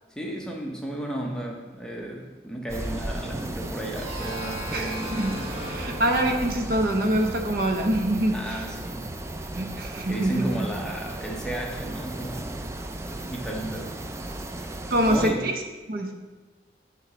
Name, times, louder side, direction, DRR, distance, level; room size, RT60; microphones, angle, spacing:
voice 1, 0.1-5.5 8.3-9.2 10.1-12.7 13.2-14.0 15.1-15.5, right 1 dB, 5° left, -1 dB, 0.8 m, -34 dB
sound 1, 2.7-15.3, right 1 dB, 15° right, 0.3 m, -35 dB
sound 2, 4.0-8.6, right 1 dB, 30° right, 1.3 m, -38 dB
voice 2, 4.7-5.3 5.7-8.6 9.6-10.7 14.9-15.6 15.9-16.1, right 1 dB, 50° right, 3 dB, 0.8 m, -25 dB
9.0 x 3.2 x 6.0 m, 1.2 s
head